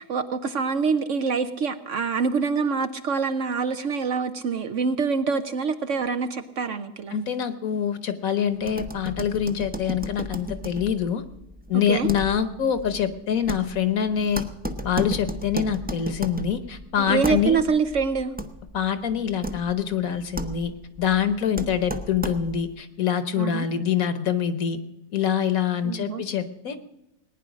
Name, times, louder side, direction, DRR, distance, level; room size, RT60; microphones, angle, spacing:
voice 1, 0.0-7.2 11.9-12.1 17.0-18.4 21.5-21.7 23.4-23.7 25.8-26.2, right 5 dB, 60° right, 10 dB, 0.9 m, -25 dB
voice 2, 7.1-11.2 11.7-14.4 14.8-17.6 18.7-20.7 21.0-24.8 25.1-26.8, left 8 dB, 60° left, 12 dB, 1.4 m, -25 dB
sound 1, 8.6-22.7, equal, 10° right, 0.4 m, -35 dB
19.0 x 9.9 x 6.2 m, 0.89 s
omnidirectional pair, 1.7 m